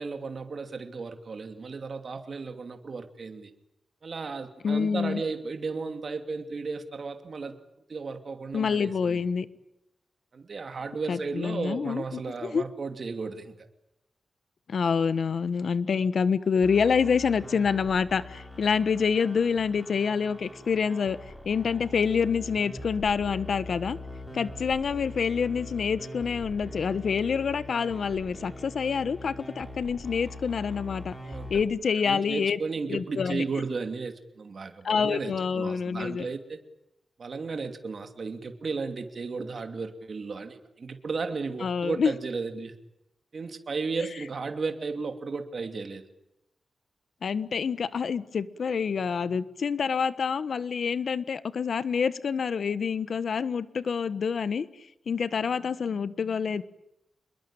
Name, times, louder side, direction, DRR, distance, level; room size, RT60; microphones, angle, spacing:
voice 1, 0.0-3.5 4.0-7.6 7.9-9.2 10.3-13.5 31.2-31.5 31.9-36.6 37.2-42.7 43.3-46.0, right 4 dB, 45° right, 7 dB, 2.7 m, -34 dB
voice 2, 4.6-5.2 8.5-9.5 11.1-12.6 14.7-21.2 21.4-24.0 24.3-31.1 31.5-32.6 32.9-33.4 34.8-36.3 41.6-42.1 44.0-44.1 47.2-56.6, left 6 dB, 60° left, 14 dB, 1.3 m, -27 dB
sound 1, 16.6-31.6, left 1 dB, 10° left, 6.2 m, -42 dB
26.0 x 22.0 x 8.9 m, 0.84 s
wide cardioid pair, 130°, 0 cm